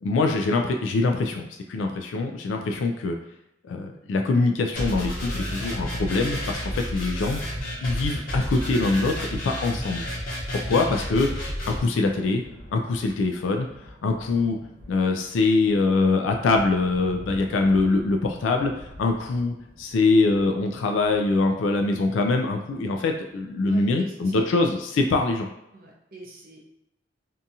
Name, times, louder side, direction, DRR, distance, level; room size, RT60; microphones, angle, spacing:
voice 1, 0.0-3.2 3.7-7.4 7.8-10.1 10.5-11.3 11.7-12.4 12.7-14.6 14.9-25.5, left 3 dB, 80° left, 4 dB, 0.3 m, -23 dB
sound 1, 4.7-11.8, equal, 50° left, 0.9 m, -31 dB
sound 2, 11.7-23.9, equal, 70° right, 1.0 m, -46 dB
voice 2, 23.6-24.5 25.7-26.6, equal, 50° right, -2 dB, 0.6 m, -43 dB
2.7 x 2.3 x 2.6 m, 0.88 s
head